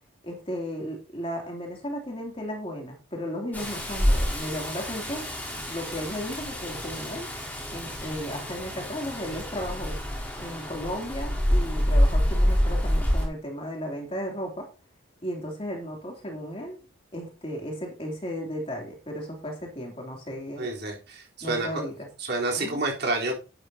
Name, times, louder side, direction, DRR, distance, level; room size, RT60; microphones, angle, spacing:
voice 1, 0.2-7.3 7.7-10.0 10.4-14.7 15.2-16.8 17.1-20.7 21.4-22.1 22.5-22.8, equal, 30° left, 1 dB, 3.0 m, -35 dB
Rain, 3.5-13.3, equal, 10° left, 3.7 m, -27 dB
voice 2, 20.6-21.7 22.2-23.4, right 2 dB, 55° right, -1 dB, 3.8 m, -29 dB
12.0 x 10.0 x 2.9 m, 0.33 s
head